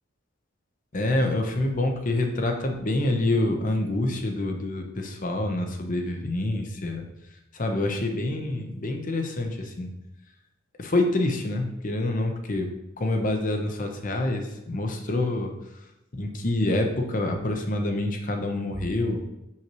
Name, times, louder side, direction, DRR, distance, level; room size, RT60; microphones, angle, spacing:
voice 1, 0.9-7.1 7.5-9.9 10.8-12.7 13.0-15.5 16.2-19.2, left 2 dB, 45° left, 4 dB, 0.8 m, -26 dB
6.3 x 5.7 x 3.0 m, 0.91 s
head